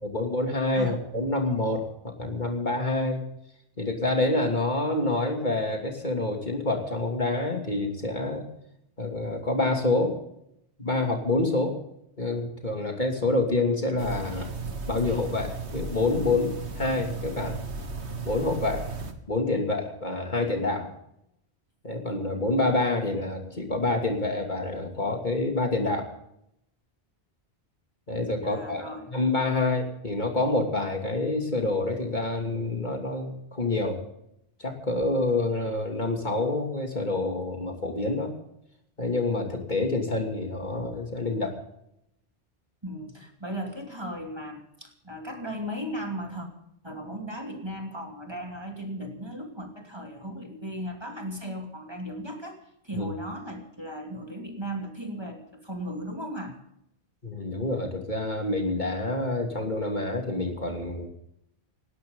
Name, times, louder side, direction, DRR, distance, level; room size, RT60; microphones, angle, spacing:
voice 1, 0.0-3.2 3.8-8.4 9.0-10.1 10.8-11.8 12.2-14.5 14.9-17.6 18.2-18.9 19.3-20.9 21.8-26.1 28.1-34.0 34.6-38.3 39.0-41.5 52.9-53.1 57.2-61.1, left 2 dB, 45° left, 2 dB, 2.9 m, -27 dB
sound 1, 14.0-19.1, right 4 dB, 85° right, 1.9 m, -35 dB
voice 2, 28.4-29.1 42.8-46.5 46.8-52.6 52.8-56.6, equal, 25° right, 2 dB, 2.7 m, -36 dB
18.5 x 17.5 x 3.9 m, 0.78 s
omnidirectional pair, 1.1 m